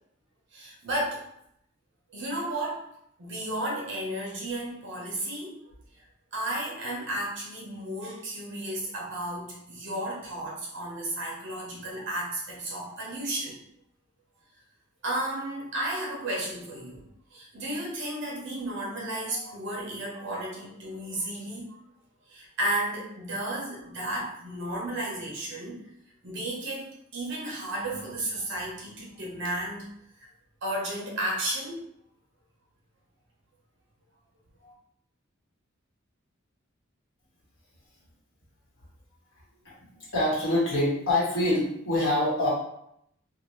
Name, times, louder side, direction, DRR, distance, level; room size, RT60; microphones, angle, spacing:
voice 1, 0.5-1.2 2.1-2.8 3.2-5.7 6.3-13.6 15.0-17.0 17.3-21.8 22.3-25.8 26.2-29.9 30.6-31.8 34.6-34.7, right 1 dB, 60° right, -3 dB, 0.9 m, -33 dB
voice 2, 39.6-42.5, left 1 dB, 65° left, -6 dB, 1.2 m, -25 dB
2.8 x 2.3 x 3.1 m, 0.75 s
head